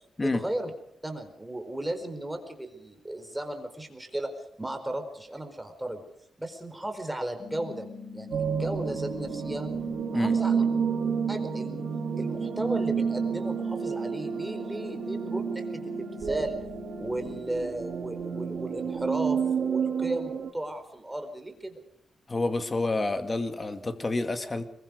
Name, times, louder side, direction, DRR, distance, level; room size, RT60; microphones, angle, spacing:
voice 1, 0.2-0.7 1.0-4.3 4.6-6.0 6.4-7.8 8.1-9.7 10.1-10.6 11.3-11.8 12.2-16.6 17.0-21.8, right 1 dB, 10° right, 7 dB, 4.4 m, -35 dB
sound 1, 7.4-17.4, left 4 dB, 55° left, 7.8 m, -42 dB
sound 2, 8.3-20.5, right 6 dB, 65° right, 2.6 m, -30 dB
voice 2, 22.3-24.7, left 2 dB, 25° left, 8 dB, 2.3 m, -28 dB
26.0 x 22.5 x 5.3 m, 0.75 s
cardioid pair, 115°, 0 cm